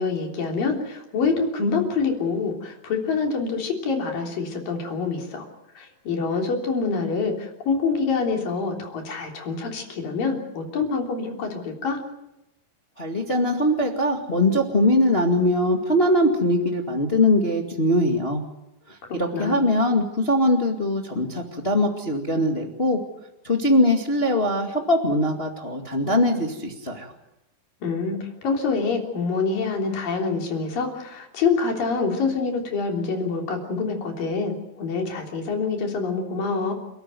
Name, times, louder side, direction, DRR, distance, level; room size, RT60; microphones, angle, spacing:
voice 1, 0.0-5.5 5.8-12.0 19.1-19.6 27.8-36.7, left 4 dB, 70° left, 1 dB, 5.2 m, -26 dB
voice 2, 13.0-18.4 19.1-23.0 23.4-27.1, left 1 dB, 20° left, 2 dB, 1.6 m, -21 dB
29.5 x 13.0 x 9.4 m, 0.92 s
omnidirectional pair, 4.1 m